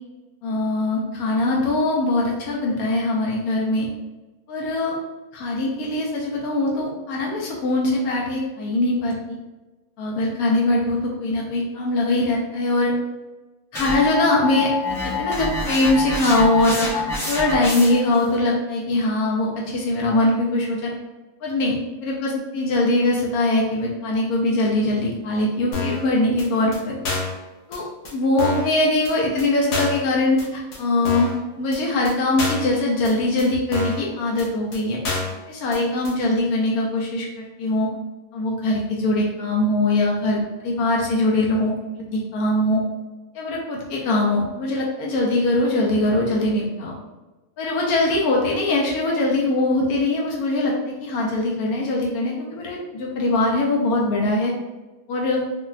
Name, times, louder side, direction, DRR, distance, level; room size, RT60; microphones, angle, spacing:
voice 1, 0.4-3.9 4.5-5.0 5.3-9.4 10.0-12.9 13.7-14.7 15.0-20.9 21.4-27.0 27.7-27.8 28.1-31.3 31.6-35.0 35.5-37.9 38.3-41.7 42.1-42.8 43.3-46.9 47.6-54.5 55.1-55.4, left 2 dB, 90° left, -2 dB, 1.1 m, -22 dB
sound 1, 13.7-18.1, left 3 dB, 5° left, 0.4 m, -27 dB
sound 2, 25.7-26.1 26.4-26.5 26.7-26.8 27.1-27.4 27.7-27.8 28.1-28.2 28.4-28.7 29.1-29.2 29.4-29.5 29.7-30.0 30.4-30.5 30.7-30.8 31.1-31.4 31.7-31.8 32.1-32.2 32.4-32.7 33.1-33.2 33.4-33.5 33.7-34.1 34.4-34.5 34.7-34.8 35.0-35.4 35.7-35.8 36.1-36.2, left 3 dB, 65° left, 1.0 m, -27 dB
3.9 x 2.2 x 2.4 m, 1.2 s
omnidirectional pair, 1.5 m